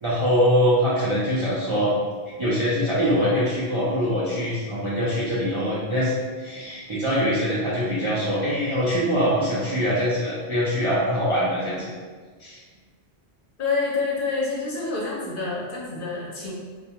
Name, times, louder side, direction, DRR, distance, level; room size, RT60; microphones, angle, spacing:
voice 1, 0.0-2.0 2.4-11.9 12.4-12.6, equal, 45° right, -10 dB, 0.4 m, -23 dB
voice 2, 13.6-16.5, left 4 dB, 60° left, -4 dB, 0.7 m, -27 dB
2.2 x 2.2 x 2.8 m, 1.5 s
omnidirectional pair, 1.1 m